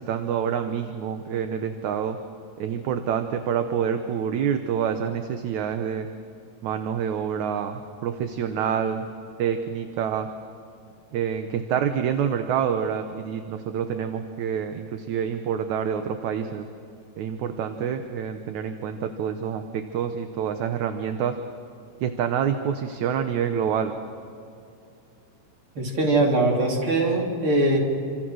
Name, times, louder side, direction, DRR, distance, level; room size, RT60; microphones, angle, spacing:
voice 1, 0.0-2.2 2.6-6.1 6.6-9.1 9.4-10.3 11.1-16.7 17.2-21.3 22.0-23.9, right 8 dB, 70° right, 7 dB, 2.3 m, -27 dB
voice 2, 25.8-27.8, right 2 dB, 40° right, -1 dB, 4.3 m, -21 dB
28.0 x 26.5 x 6.4 m, 2.7 s
omnidirectional pair, 3.7 m